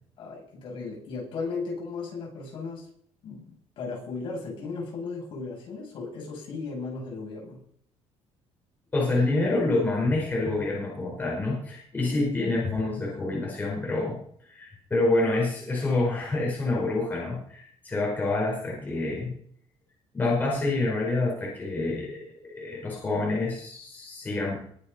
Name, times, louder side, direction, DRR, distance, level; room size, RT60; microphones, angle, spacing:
voice 1, 0.2-2.9 3.2-7.6, left 4 dB, 50° left, -2 dB, 7.8 m, -36 dB
voice 2, 8.9-19.4 20.1-24.7, left 2 dB, 15° left, -4 dB, 5.0 m, -27 dB
21.5 x 7.3 x 5.7 m, 0.63 s
cardioid pair, 175°, 11 cm